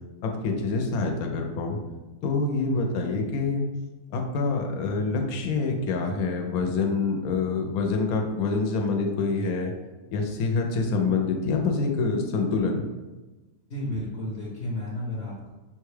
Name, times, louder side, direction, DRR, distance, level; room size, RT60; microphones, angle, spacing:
voice 1, 0.2-1.8 2.2-3.6 4.1-9.7 10.1-12.8, left 4 dB, 75° left, 3 dB, 1.0 m, -26 dB
voice 2, 13.7-15.5, left 1 dB, 50° left, -5 dB, 0.9 m, -32 dB
5.7 x 2.3 x 3.2 m, 1.2 s
omnidirectional pair, 1.7 m